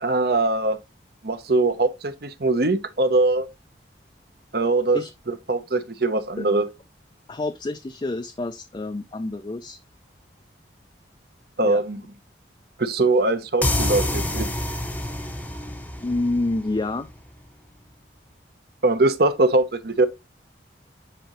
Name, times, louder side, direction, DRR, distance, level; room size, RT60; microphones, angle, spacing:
voice 1, 0.0-0.8 1.2-3.5 4.5-5.0 5.3-6.7 11.6-12.0 12.8-14.5 18.8-20.1, right 2 dB, 55° right, 0.8 m, -21 dB
voice 2, 7.3-9.8 11.6-11.8 16.0-17.1, left 2 dB, 25° left, 0.4 m, -28 dB
sound 1, 13.6-17.1, left 1 dB, 10° left, 0.7 m, -27 dB
8.0 x 4.9 x 3.0 m
head